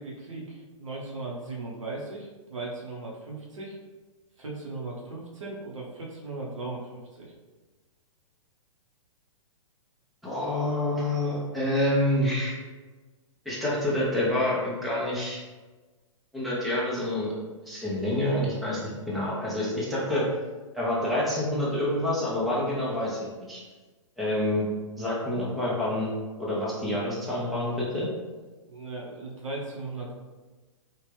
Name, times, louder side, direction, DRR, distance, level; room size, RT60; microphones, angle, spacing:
voice 1, 0.0-3.8 4.4-7.3 28.7-30.1, right 2 dB, 70° right, -3 dB, 1.0 m, -37 dB
voice 2, 10.2-12.5 13.4-15.4 16.3-17.3 17.7-20.2 20.7-23.6 24.2-24.7 25.0-26.1 26.4-28.1, left 1 dB, ahead, -7 dB, 0.9 m, -27 dB
3.2 x 2.5 x 3.3 m, 1.3 s
figure-of-eight pair, 115°, 17 cm